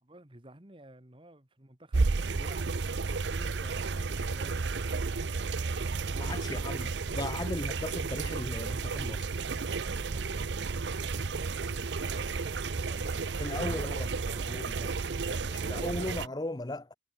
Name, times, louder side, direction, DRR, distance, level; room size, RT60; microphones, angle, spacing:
voice 1, 0.0-5.0 5.7-6.7 9.8-13.2 13.6-13.9 14.3-16.0, right 1 dB, 30° right, 1.9 m, -53 dB
Sounds inside manhole cover, 1.9-16.3, right 4 dB, 90° right, 0.7 m, -32 dB
voice 2, 6.2-9.3 13.4-14.1 14.5-14.9 15.3-17.0, left 2 dB, 25° left, 0.8 m, -37 dB
head